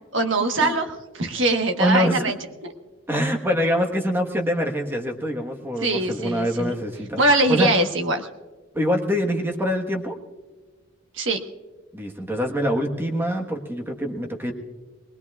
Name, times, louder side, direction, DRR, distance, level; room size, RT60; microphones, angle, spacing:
voice 1, 0.1-2.3 2.6-2.7 5.8-6.7 7.2-8.3 11.1-11.4, right 2 dB, 60° right, 5 dB, 1.3 m, -22 dB
voice 2, 1.8-2.3 3.1-7.2 7.5-7.7 8.7-10.2 11.9-14.5, equal, 10° right, 2 dB, 1.3 m, -24 dB
21.5 x 20.0 x 2.4 m, 1.3 s
head